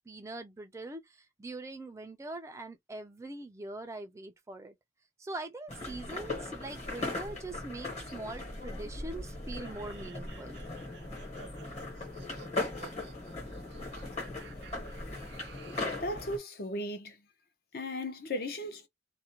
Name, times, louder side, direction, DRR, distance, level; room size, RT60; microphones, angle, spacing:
voice 1, 0.0-4.7 5.2-10.6, right 2 dB, 15° right, 0.3 m, -43 dB
sound 1, 5.7-16.4, left 2 dB, 40° left, 1.1 m, -39 dB
sound 2, 9.5-16.1, right 6 dB, 85° right, 0.6 m, -54 dB
voice 2, 16.0-17.2 17.7-18.9, left 1 dB, 55° left, 0.6 m, -36 dB
2.4 x 2.1 x 2.8 m
head